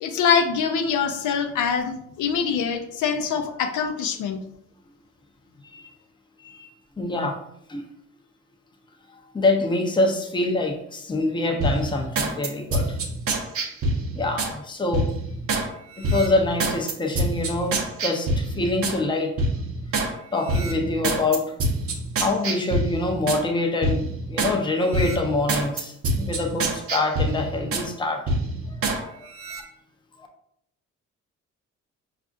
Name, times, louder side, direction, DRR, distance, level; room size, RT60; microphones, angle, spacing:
voice 1, 0.0-4.4, left 6 dB, 75° left, 6 dB, 0.5 m, -24 dB
voice 2, 6.4-6.7 7.0-7.4 7.7-7.8 9.3-13.0 14.1-15.1 16.0-19.4 20.3-21.6 22.2-28.2 28.7-29.3, left 2 dB, 15° left, 3 dB, 0.6 m, -25 dB
sound 1, 11.6-14.5 14.9-15.7 16.0-19.0 19.4-20.1 20.5-23.4 23.8-24.6 24.9-27.9 28.3-29.0 29.3-29.6, right 2 dB, 50° right, 0.7 m, -26 dB
4.8 x 2.5 x 2.5 m, 0.74 s
cardioid pair, 90°, 30 cm